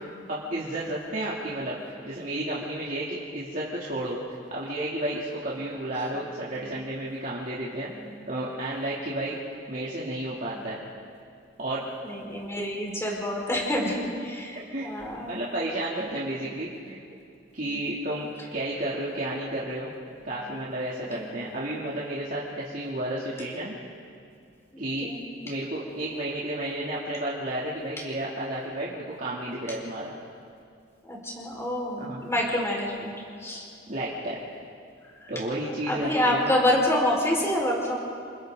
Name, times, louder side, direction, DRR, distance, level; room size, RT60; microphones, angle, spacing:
voice 1, 0.3-1.8 2.0-4.2 4.5-7.9 8.3-9.4 9.7-10.8 11.6-11.8 13.8-13.9 14.7-17.0 17.5-19.9 20.2-23.8 24.8-25.1 25.4-30.1 32.0-32.2 33.9-34.4 35.3-36.6, right 1 dB, 50° right, -7 dB, 2.9 m, -32 dB
voice 2, 12.0-14.0 14.4-15.4 17.6-17.9 20.2-20.5 21.0-21.6 24.7-25.2 31.0-33.1 33.4-33.7 35.2-35.3 35.9-38.0, left 1 dB, 15° left, -3 dB, 5.0 m, -28 dB
30.0 x 25.5 x 4.0 m, 2.4 s
head